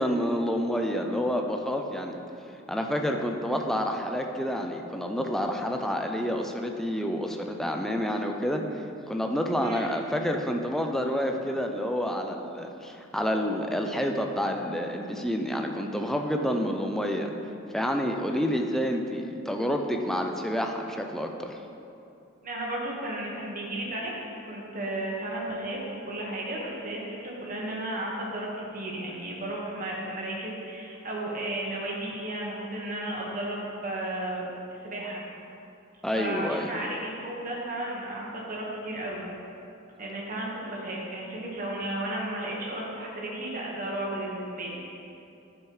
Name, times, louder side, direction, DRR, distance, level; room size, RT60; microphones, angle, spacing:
voice 1, 0.0-2.2 2.7-17.3 17.7-21.6 36.0-36.7, equal, ahead, 3 dB, 0.4 m, -29 dB
voice 2, 22.4-24.1 24.4-25.8 26.1-34.4 34.8-35.2 36.2-39.3 40.0-44.8, right 1 dB, 40° right, -3 dB, 1.5 m, -34 dB
9.5 x 7.0 x 3.2 m, 2.7 s
head